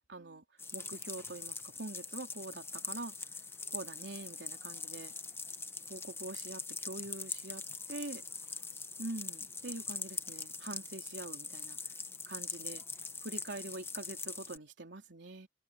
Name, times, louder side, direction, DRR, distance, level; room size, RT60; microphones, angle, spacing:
voice 1, 0.1-0.4 0.7-3.2 3.7-5.1 5.9-8.2 9.0-11.9 12.3-12.8 13.2-15.5, right 2 dB, 70° right, 4.0 m, -44 dB
sound 1, 0.6-14.6, left 4 dB, 15° left, 1.3 m, -43 dB
head